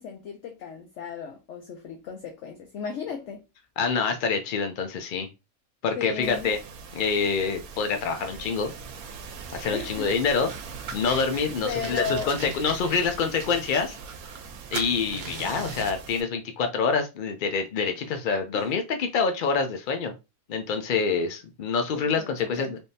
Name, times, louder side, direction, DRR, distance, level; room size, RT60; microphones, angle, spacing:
voice 1, 0.0-3.5 6.0-6.5 9.7-10.2 11.6-12.3 18.5-18.7 21.9-22.8, left 6 dB, 65° left, 0.8 m, -35 dB
voice 2, 3.8-5.3 5.8-6.6 6.9-8.7 9.5-10.5 10.9-14.0 14.7-20.1 20.5-22.8, left 5 dB, 85° left, 0.4 m, -26 dB
sound 1, 6.2-16.2, right 5 dB, 80° right, 1.1 m, -41 dB
sound 2, 10.5-11.4 11.8-14.5 14.7-16.0, right 5 dB, 55° right, 0.8 m, -39 dB
3.5 x 2.7 x 2.6 m
omnidirectional pair, 1.5 m